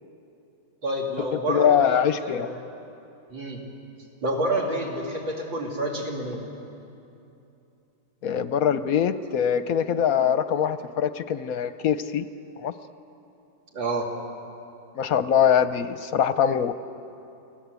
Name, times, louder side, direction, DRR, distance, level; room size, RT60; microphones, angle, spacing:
voice 1, 0.8-2.6 3.3-3.6 4.2-6.4 13.7-14.1, right 1 dB, 85° right, -1 dB, 4.1 m, -28 dB
voice 2, 1.5-2.5 8.2-12.3 12.6-12.7 15.0-16.7, left 8 dB, 65° left, 12 dB, 0.9 m, -23 dB
29.5 x 18.5 x 8.2 m, 2.8 s
omnidirectional pair, 2.0 m